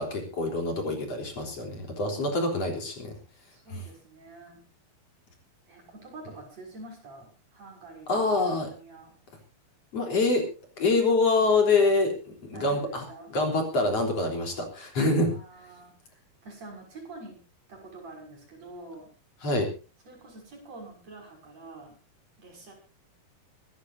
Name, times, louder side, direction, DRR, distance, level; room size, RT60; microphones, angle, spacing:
voice 1, 0.0-3.2 3.7-3.8 8.1-8.7 9.9-10.5 10.8-13.0 13.3-15.4 19.4-19.7, left 3 dB, 40° left, 3 dB, 4.5 m, -25 dB
voice 2, 3.5-4.6 5.7-9.1 12.5-13.3 14.9-17.4 17.7-19.1 20.1-22.0 22.4-22.7, right 2 dB, 45° right, 1 dB, 7.2 m, -47 dB
25.5 x 13.5 x 2.7 m, 0.33 s
omnidirectional pair, 4.3 m